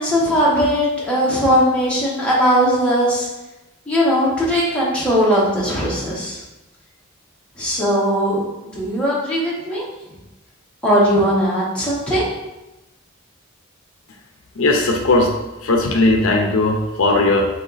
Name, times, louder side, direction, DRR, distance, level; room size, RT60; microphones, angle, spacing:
voice 1, 0.0-3.3 3.9-6.4 7.6-8.4 8.7-9.8 10.8-12.2, equal, 5° left, -7 dB, 1.0 m, -18 dB
voice 2, 14.6-15.3 15.6-17.5, left 2 dB, 75° left, 2 dB, 0.6 m, -17 dB
4.0 x 2.9 x 4.0 m, 1.0 s
head